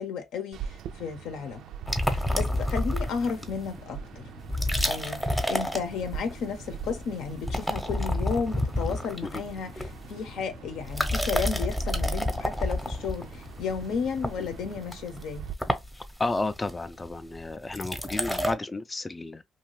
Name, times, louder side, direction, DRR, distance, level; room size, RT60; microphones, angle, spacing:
voice 1, 0.0-1.6 2.0-4.3 4.8-15.5, left 6 dB, 85° left, 0.7 m, -33 dB
sound 1, 0.5-15.5, right 8 dB, 80° right, 0.3 m, -44 dB
sound 2, 1.9-3.7 4.4-6.4 6.7-7.1 7.3-10.3 10.8-18.5, left 1 dB, 5° left, 0.7 m, -29 dB
sound 3, 2.5-14.8, left 5 dB, 50° left, 0.6 m, -48 dB
voice 2, 15.9-19.4, left 2 dB, 25° left, 0.3 m, -32 dB
2.7 x 2.3 x 3.1 m
cardioid pair, 90°, 0 cm